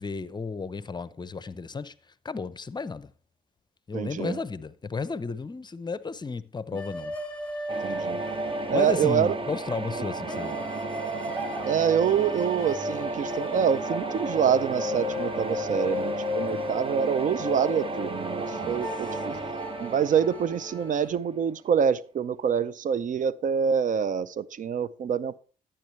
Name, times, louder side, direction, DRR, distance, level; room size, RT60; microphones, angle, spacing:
voice 1, 0.0-1.9 2.2-3.1 3.9-7.1 8.7-10.7 16.5-16.7 18.5-18.9 19.3-19.4, left 4 dB, 30° left, 0.6 m, -33 dB
voice 2, 3.9-4.4 7.8-8.2 8.7-9.3 11.6-19.4 19.8-25.4, right 8 dB, 55° right, 0.5 m, -26 dB
sound 1, 6.7-9.3 10.3-21.1, left 3 dB, 10° left, 2.2 m, -35 dB
sound 2, 7.7-21.5, right 3 dB, 35° right, 1.0 m, -34 dB
12.0 x 8.8 x 3.1 m
supercardioid pair, 65°, 16 cm